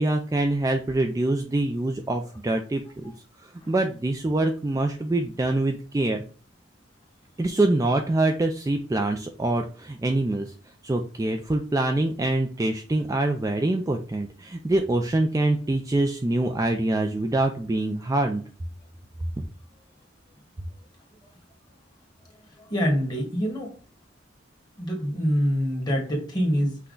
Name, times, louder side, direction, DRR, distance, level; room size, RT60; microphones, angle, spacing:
voice 1, 0.0-3.0 3.4-6.2 7.4-10.5 10.8-18.4, right 2 dB, 15° right, 4 dB, 0.3 m, -25 dB
voice 2, 22.6-23.7 24.8-26.8, equal, 20° left, -1 dB, 1.4 m, -25 dB
5.8 x 2.2 x 3.8 m, 0.37 s
head